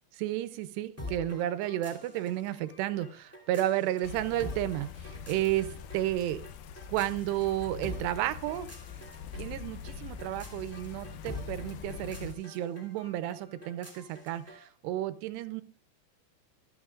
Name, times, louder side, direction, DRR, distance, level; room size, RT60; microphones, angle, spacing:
voice 1, 0.2-6.5 6.9-8.7 9.3-15.6, right 13 dB, 80° right, 13 dB, 2.8 m, -32 dB
sound 1, 1.0-14.7, left 2 dB, 5° left, 1.9 m, -46 dB
sound 2, 4.0-12.3, left 7 dB, 80° left, 2.1 m, -44 dB
25.0 x 8.8 x 2.4 m, 0.40 s
omnidirectional pair, 4.9 m